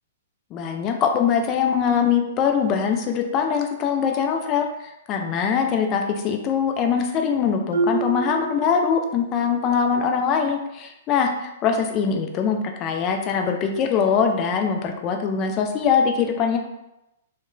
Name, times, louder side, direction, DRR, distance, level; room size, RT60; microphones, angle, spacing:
voice 1, 0.5-16.6, left 6 dB, 30° left, 4 dB, 0.3 m, -22 dB
Marimba xylophone, 7.7-9.5, right 4 dB, 75° right, 0.3 m, -28 dB
2.8 x 2.1 x 2.3 m, 0.90 s
figure-of-eight pair, 110°, 0 cm